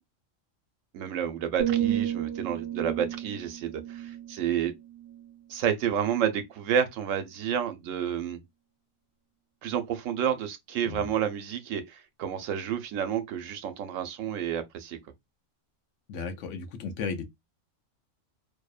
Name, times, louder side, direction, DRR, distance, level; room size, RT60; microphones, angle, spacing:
voice 1, 0.9-4.7 5.5-8.4 9.6-15.0, right 9 dB, 80° right, 0.9 m, -30 dB
sound 1, 1.6-5.5 6.0-6.3, right 11 dB, 15° right, 0.8 m, -33 dB
voice 2, 16.1-17.3, left 5 dB, 75° left, 0.9 m, -35 dB
2.6 x 2.1 x 2.3 m
omnidirectional pair, 1.3 m